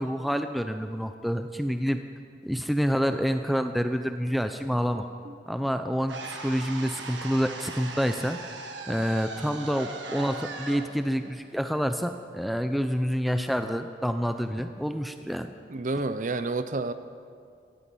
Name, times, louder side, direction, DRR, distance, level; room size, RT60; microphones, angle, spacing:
voice 1, 0.0-2.0 2.4-5.1 5.5-8.4 8.9-15.5, equal, ahead, 7 dB, 0.4 m, -28 dB
sound 1, 6.1-12.2, right 3 dB, 80° right, 1.6 m, -39 dB
voice 2, 15.7-16.9, right 3 dB, 45° right, 11 dB, 0.7 m, -29 dB
16.0 x 9.3 x 8.5 m, 2.2 s
head